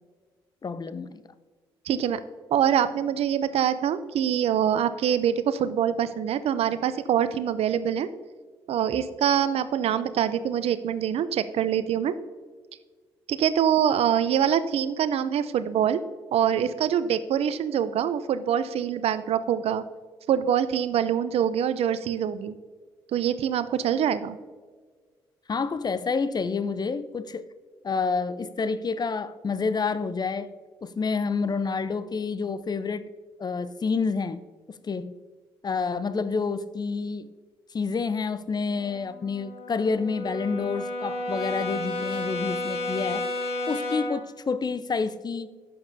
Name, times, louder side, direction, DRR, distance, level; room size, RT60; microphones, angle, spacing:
voice 1, 0.6-1.2 25.5-27.5 27.8-30.5 30.8-33.1 33.4-34.4 34.8-35.2 35.6-37.3 37.7-43.3 43.7-45.5, left 4 dB, 40° left, 14 dB, 0.6 m, -28 dB
voice 2, 1.9-2.2 2.5-8.1 8.7-12.2 13.3-16.0 16.3-19.8 20.3-22.5 23.1-24.4, right 9 dB, 65° right, 14 dB, 0.5 m, -24 dB
Brass instrument, 38.7-44.3, left 1 dB, 70° left, 1.4 m, -32 dB
11.5 x 8.5 x 2.7 m, 1.5 s
hypercardioid pair, 50°, 11 cm